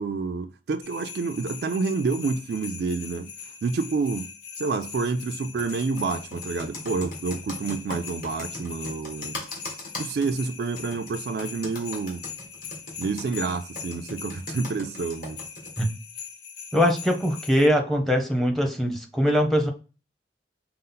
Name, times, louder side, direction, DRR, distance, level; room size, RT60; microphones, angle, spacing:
voice 1, 0.0-3.3 3.6-4.3 4.6-9.4 10.0-12.2 13.0-15.4, right 4 dB, 60° right, 0.3 m, -28 dB
sound 1, 0.8-17.7, left 7 dB, 70° left, 0.7 m, -41 dB
Computer keyboard, 5.6-15.8, left 1 dB, 50° left, 1.6 m, -38 dB
voice 2, 16.7-19.7, equal, ahead, 0.7 m, -22 dB
5.4 x 2.0 x 3.8 m
head